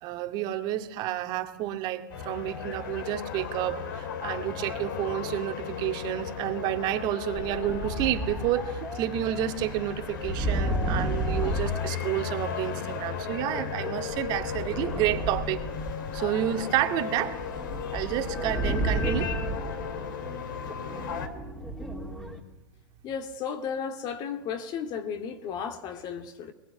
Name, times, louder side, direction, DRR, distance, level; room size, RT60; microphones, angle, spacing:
voice 1, 0.0-15.6 16.1-17.4 17.9-19.3, right 12 dB, 40° right, 2.1 m, -30 dB
sound 1, 2.1-21.3, left 7 dB, 65° left, 3.4 m, -35 dB
fireball excerpt, 7.4-12.7 13.5-22.4, right 1 dB, 5° left, 3.1 m, -33 dB
voice 2, 23.0-26.5, left 7 dB, 35° left, 2.3 m, -34 dB
21.5 x 20.5 x 9.4 m
hypercardioid pair, 125°, 11 cm